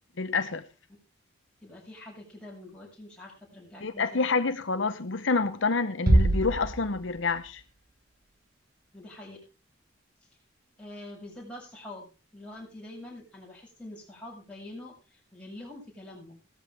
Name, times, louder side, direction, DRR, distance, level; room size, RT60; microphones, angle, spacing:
voice 1, 0.2-0.7 3.8-7.6, left 4 dB, 70° left, 0.9 m, -28 dB
voice 2, 1.6-4.4 8.9-9.4 10.8-16.4, left 1 dB, 5° left, 7.6 m, -45 dB
Bass drum, 6.1-7.5, right 1 dB, 45° right, 1.6 m, -24 dB
17.0 x 13.5 x 3.5 m
head